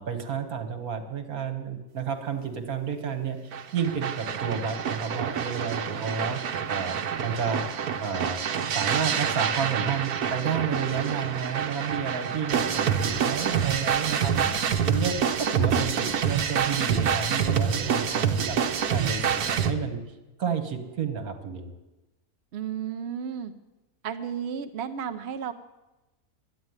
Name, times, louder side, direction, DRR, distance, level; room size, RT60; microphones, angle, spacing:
voice 1, 0.0-3.4 3.7-6.4 6.7-14.6 14.8-20.0 20.4-21.7, right 6 dB, 70° right, 7 dB, 1.9 m, -31 dB
sound 1, 3.5-19.7, right 7 dB, 85° right, 1.4 m, -27 dB
voice 2, 22.5-23.5 24.0-25.5, right 8 dB, 55° right, 7 dB, 0.9 m, -33 dB
12.0 x 10.0 x 9.5 m, 1.0 s
omnidirectional pair, 1.6 m